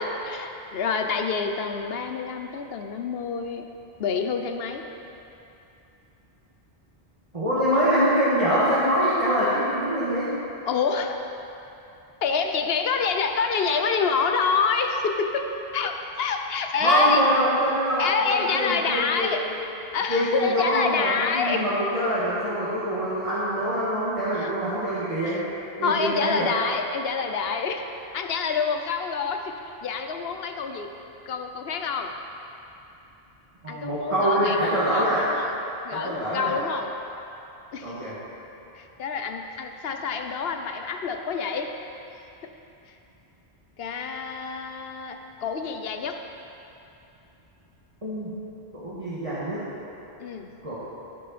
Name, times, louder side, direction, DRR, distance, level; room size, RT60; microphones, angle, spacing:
voice 1, 0.0-3.6 4.0-4.8 7.6-7.9 10.7-11.2 12.2-15.4 15.7-17.2 18.0-19.4 19.9-21.6 24.3-24.5 25.3-25.4 25.8-27.9 28.1-29.5 29.8-30.9 31.3-32.1 33.7-35.5 35.8-36.9 37.7-38.1 38.7-41.7 43.8-46.2 50.2-50.5, left 5 dB, 70° left, 5 dB, 1.0 m, -27 dB
voice 2, 7.3-10.3 16.8-19.3 20.1-25.4 25.8-26.5 33.6-35.2 35.9-36.6 37.8-38.1 48.0-48.3 48.7-49.7 50.6-50.8, equal, 30° right, -10 dB, 1.8 m, -24 dB
15.5 x 6.6 x 4.3 m, 2.9 s
omnidirectional pair, 1.1 m